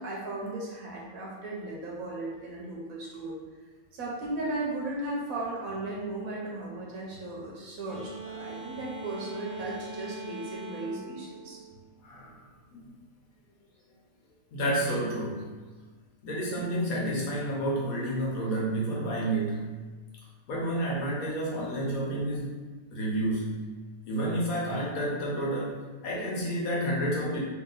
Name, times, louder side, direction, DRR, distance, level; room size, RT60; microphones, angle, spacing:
voice 1, 0.0-3.4 3.9-11.6, right 2 dB, 75° right, -3 dB, 1.1 m, -36 dB
sound 1, 7.9-12.3, right 2 dB, 45° left, 0.6 m, -42 dB
voice 2, 12.0-12.4 12.7-12.9 14.5-15.4 16.2-19.7 20.5-22.5 22.9-23.5 24.1-25.8 26.0-27.4, right 1 dB, 80° left, -4 dB, 1.4 m, -30 dB
2.9 x 2.8 x 3.9 m, 1.4 s
omnidirectional pair, 1.5 m